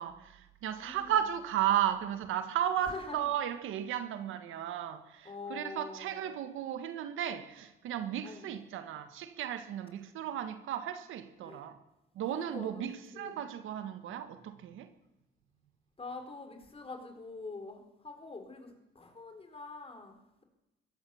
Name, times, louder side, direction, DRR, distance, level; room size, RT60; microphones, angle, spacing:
voice 1, 0.0-11.8 12.1-14.9, right 10 dB, 85° right, 1.6 m, -34 dB
voice 2, 0.8-1.2 2.8-3.3 5.2-6.3 8.2-8.6 11.4-11.6 12.3-13.4 16.0-20.4, left 3 dB, 30° left, 4.4 m, -45 dB
22.5 x 16.5 x 7.2 m
cardioid pair, 90°, 20 cm